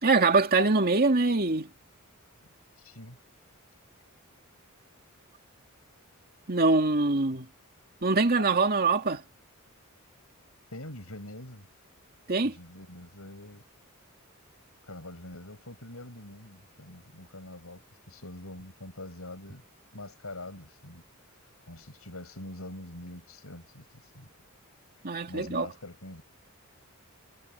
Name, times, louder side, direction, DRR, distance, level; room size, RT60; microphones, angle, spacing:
voice 1, 0.0-1.7 6.5-7.5 8.0-9.2 12.3-12.5 25.0-25.7, right 3 dB, 45° right, 2.4 m, -23 dB
voice 2, 2.8-3.2 10.7-11.7 12.4-13.6 14.8-19.6 19.9-21.0 21.7-23.9 24.1-24.3 25.3-26.2, left 1 dB, 80° left, 7.8 m, -44 dB
head